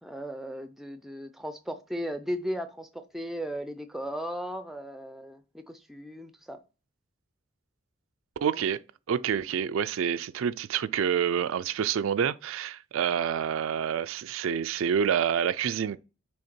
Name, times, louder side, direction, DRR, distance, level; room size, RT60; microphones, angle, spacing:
voice 1, 0.0-6.6, equal, ahead, 0.4 m, -36 dB
voice 2, 8.4-8.8 9.1-16.0, right 8 dB, 75° right, 0.3 m, -27 dB
6.4 x 3.5 x 4.4 m
head